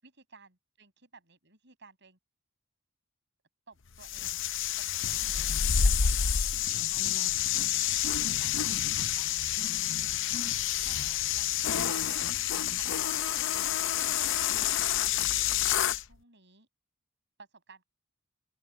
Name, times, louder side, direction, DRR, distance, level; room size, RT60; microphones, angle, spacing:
voice 1, 0.0-2.2 3.7-4.5 4.8-6.4 6.8-7.8 8.4-9.5 10.8-11.9 12.7-15.0 15.8-16.7 17.4-17.9, right 4 dB, 55° right, 7.3 m, -55 dB
sound 1, 4.0-16.0, left 9 dB, 60° left, 0.7 m, -28 dB
open air
head